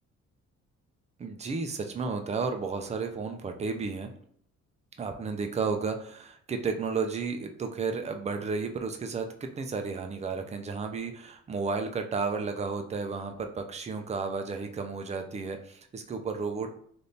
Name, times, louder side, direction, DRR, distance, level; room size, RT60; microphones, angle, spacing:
voice 1, 1.2-4.1 5.0-16.7, right 4 dB, 25° right, 5 dB, 0.4 m, -33 dB
3.3 x 2.6 x 2.7 m, 0.63 s
cardioid pair, 90°, 30 cm